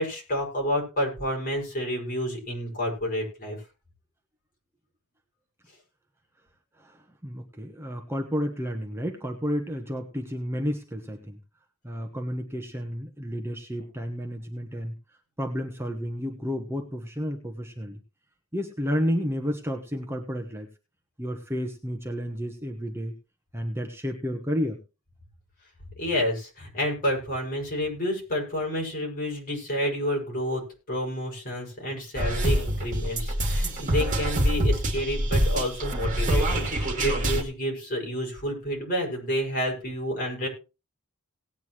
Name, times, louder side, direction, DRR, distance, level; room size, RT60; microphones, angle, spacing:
voice 1, 0.0-3.6 26.0-30.6 30.9-40.5, equal, 40° left, -1 dB, 5.8 m, -29 dB
voice 2, 6.8-11.4 11.8-14.9 15.4-18.0 18.5-20.7 21.2-23.1 23.5-24.8, equal, 10° right, 2 dB, 1.1 m, -31 dB
sound 1, 32.2-37.4, right 1 dB, 35° right, 2.6 m, -25 dB
18.5 x 9.3 x 3.1 m, 0.30 s
head